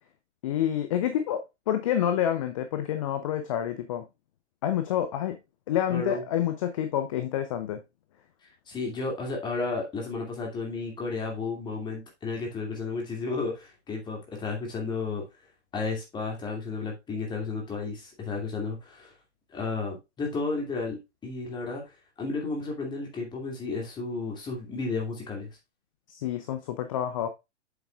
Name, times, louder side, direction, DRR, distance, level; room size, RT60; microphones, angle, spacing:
voice 1, 0.4-4.1 4.6-5.4 5.7-7.8 26.1-27.3, left 10 dB, 30° left, 0.7 m, -28 dB
voice 2, 5.9-6.2 8.7-15.2 15.7-19.1 19.5-21.8 22.2-25.5, left 3 dB, 10° left, 2.5 m, -33 dB
8.1 x 7.0 x 2.4 m
figure-of-eight pair, 115°, 35 cm